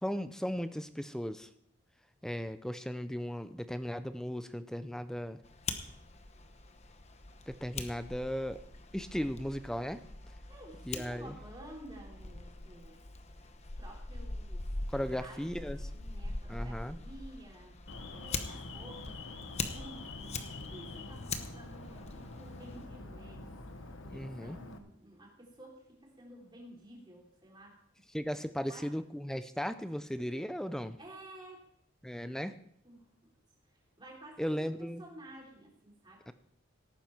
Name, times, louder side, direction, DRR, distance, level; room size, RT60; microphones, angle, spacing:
voice 1, 0.0-1.5 2.2-5.4 7.5-8.6 8.9-10.0 10.9-11.3 14.9-15.8 16.5-17.0 24.0-24.6 28.1-31.0 32.0-32.5 34.4-35.0 36.3-36.4, equal, 5° left, 12 dB, 0.5 m, -36 dB
Fire, 5.4-22.8, left 3 dB, 30° left, 0.9 m, -43 dB
voice 2, 10.5-13.0 13.8-15.6 15.9-17.8 18.1-23.5 24.1-27.7 28.7-28.9 31.0-31.7 32.8-33.0 34.0-36.2, right 1 dB, 20° right, -2 dB, 3.4 m, -52 dB
Alarm, 17.9-24.8, left 2 dB, 65° left, 1.2 m, -46 dB
17.0 x 9.4 x 4.5 m, 0.71 s
head